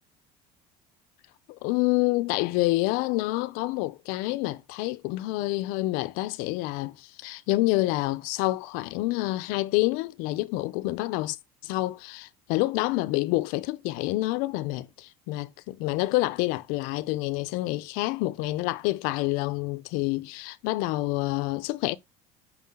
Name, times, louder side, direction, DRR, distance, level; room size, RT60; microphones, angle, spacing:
voice 1, 1.5-11.4 11.6-22.0, left 19 dB, 75° left, 0.5 m, -28 dB
5.6 x 4.9 x 3.6 m
cardioid pair, 120°, 14 cm